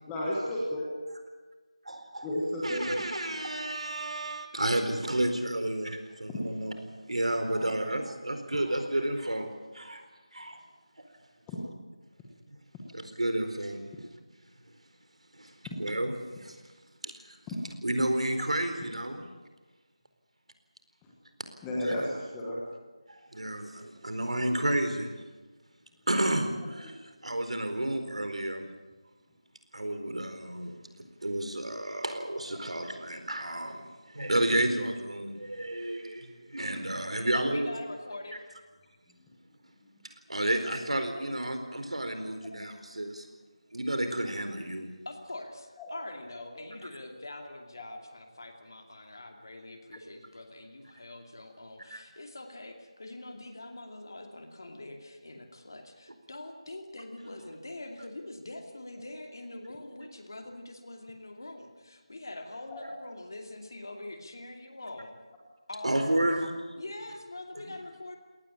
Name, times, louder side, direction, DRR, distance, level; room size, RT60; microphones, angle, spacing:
voice 1, 0.1-0.9 2.2-2.9 6.3-6.4 11.5-11.6 15.7-15.8 17.5-17.6 21.0-21.1 21.6-22.6 26.8-26.9 45.8-45.9 62.7-62.9, left 1 dB, 5° left, -4 dB, 1.1 m, -33 dB
voice 2, 1.8-2.3 2.6-10.1 10.3-10.6 12.9-13.8 15.3-16.6 17.0-17.4 17.8-19.3 21.8-21.9 23.1-25.1 26.1-28.7 29.7-30.8 31.2-37.7 40.3-43.3 43.7-44.9 51.9-52.0 65.8-66.5, right 1 dB, 80° right, 7 dB, 4.4 m, -31 dB
voice 3, 37.3-38.4 45.0-65.2 65.7-66.3 66.7-68.2, left 2 dB, 40° left, 4 dB, 2.5 m, -44 dB
21.0 x 18.5 x 8.9 m, 1.3 s
figure-of-eight pair, 180°, 3 cm